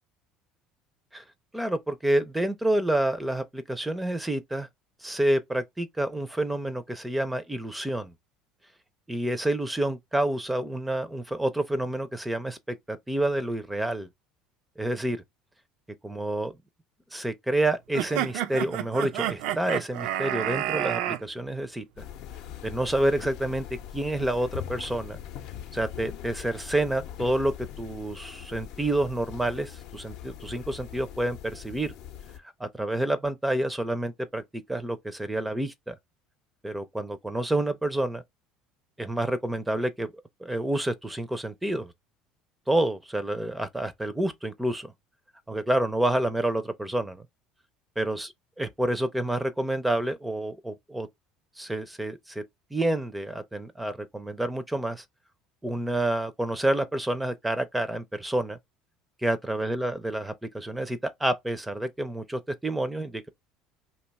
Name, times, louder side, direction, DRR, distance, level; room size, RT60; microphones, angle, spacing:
voice 1, 1.5-4.7 5.0-8.1 9.1-14.1 14.8-15.2 16.0-16.5 17.1-22.0 22.6-23.7 23.9-25.2 25.7-31.9 32.6-35.9 36.6-38.2 39.0-40.1 40.4-41.9 42.7-44.9 45.5-47.2 48.0-48.3 48.6-51.1 51.6-52.4 52.7-55.0 55.6-58.6 59.2-63.3, right 1 dB, 10° right, 0.4 m, -28 dB
sound 1, 17.9-21.2, right 12 dB, 75° right, 0.4 m, -29 dB
sound 2, 22.0-32.4, left 10 dB, 70° left, 0.6 m, -41 dB
2.7 x 2.3 x 3.9 m
supercardioid pair, 95°, 0 cm